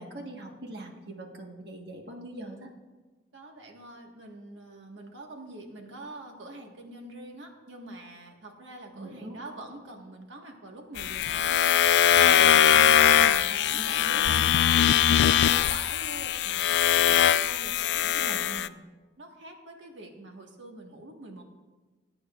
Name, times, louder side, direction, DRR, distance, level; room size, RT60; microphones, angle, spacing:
voice 1, 0.0-2.7 8.9-9.4 13.5-14.3 18.0-18.7, right 2 dB, 65° right, 1 dB, 1.4 m, -42 dB
voice 2, 3.3-18.4 19.2-21.4, right 1 dB, 90° right, 2 dB, 1.6 m, -45 dB
sound 1, 11.0-18.7, left 10 dB, 70° left, 0.3 m, -21 dB
20.0 x 8.9 x 2.4 m, 1.3 s
head